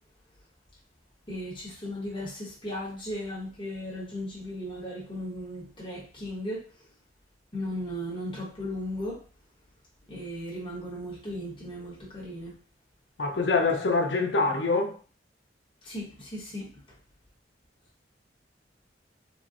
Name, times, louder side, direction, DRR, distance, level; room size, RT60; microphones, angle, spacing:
voice 1, 1.3-6.6 7.5-9.2 10.1-12.6 15.8-16.7, left 1 dB, 30° left, 0.9 m, -36 dB
voice 2, 13.2-14.9, left 3 dB, 75° left, 0.5 m, -25 dB
3.6 x 2.0 x 2.5 m
head